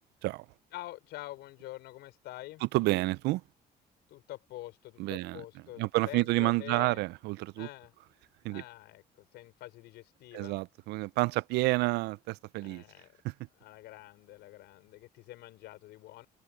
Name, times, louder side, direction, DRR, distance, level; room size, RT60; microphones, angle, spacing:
voice 1, 0.7-2.6 4.1-7.0 7.6-7.9 8.5-10.5 12.6-13.2 13.6-16.3, left 16 dB, 85° left, 5.7 m, -46 dB
voice 2, 2.7-3.4 5.0-5.4 5.8-7.7 8.4-8.6 10.3-12.8 13.2-13.3, right 21 dB, 85° right, 0.4 m, -29 dB
cardioid pair, 110°, 17 cm